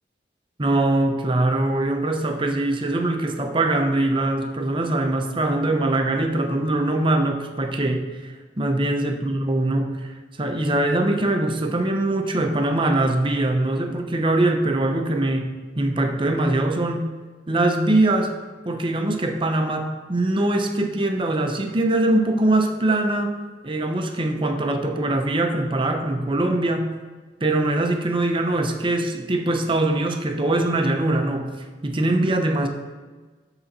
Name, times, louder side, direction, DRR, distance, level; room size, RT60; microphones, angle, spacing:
voice 1, 0.6-8.3 8.6-9.9 10.4-15.5 15.8-17.1 17.5-18.3 18.6-23.4 23.6-26.9 27.4-32.7, right 2 dB, 30° right, 4 dB, 0.7 m, -22 dB
11.5 x 3.9 x 4.2 m, 1.3 s
head